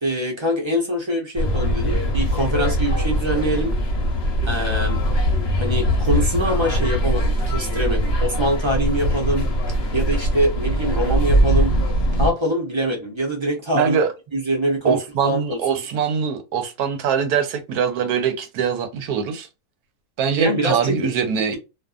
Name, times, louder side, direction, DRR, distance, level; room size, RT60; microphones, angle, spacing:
voice 1, 0.0-3.7 4.4-5.0 5.6-9.5 9.9-11.7 12.2-14.0 14.3-15.8 20.4-21.1, right 1 dB, 35° right, 0.5 m, -24 dB
sound 1, 1.3-12.3, equal, 50° left, 0.8 m, -21 dB
voice 2, 13.7-14.1 14.8-19.5 20.2-21.6, right 7 dB, 85° right, 1.1 m, -22 dB
2.6 x 2.4 x 2.3 m
omnidirectional pair, 1.6 m